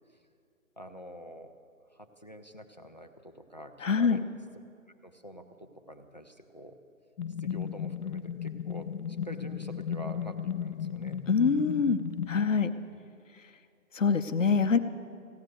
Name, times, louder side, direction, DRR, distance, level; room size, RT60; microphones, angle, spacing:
voice 1, 0.8-1.5 1.9-4.2 5.0-6.8 7.4-8.9 9.2-11.3 12.9-13.0, equal, 30° left, 7 dB, 0.6 m, -46 dB
voice 2, 3.8-4.2 11.3-12.0 12.3-12.7 13.9-14.8, left 5 dB, 60° left, 8 dB, 0.9 m, -24 dB
sound 1, 7.2-12.5, left 8 dB, 90° left, 0.6 m, -35 dB
15.5 x 10.0 x 7.7 m, 2.4 s
figure-of-eight pair, 175°, 43 cm